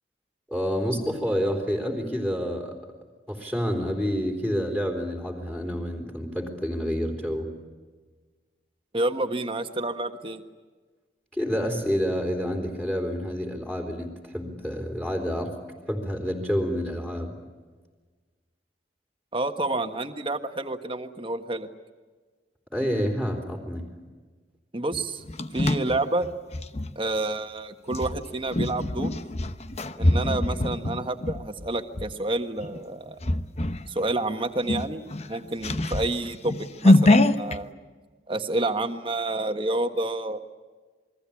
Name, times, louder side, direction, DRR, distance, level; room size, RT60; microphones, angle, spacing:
voice 1, 0.5-2.7 3.3-7.5 11.3-15.5 15.9-17.4 22.7-23.9, equal, 5° left, 2 dB, 3.6 m, -28 dB
voice 2, 8.9-10.4 19.3-21.7 24.7-25.2 25.5-26.3 26.9-29.2 30.0-33.2 33.9-36.5 36.8-37.7 38.3-40.4, right 2 dB, 30° right, 7 dB, 1.5 m, -29 dB
sound 1, 24.9-26.9 27.9-32.1 32.6-32.8 33.2-33.9 34.2-34.3 34.6-37.6, left 1 dB, 40° left, 1.0 m, -24 dB
28.5 x 21.5 x 8.6 m, 1.4 s
head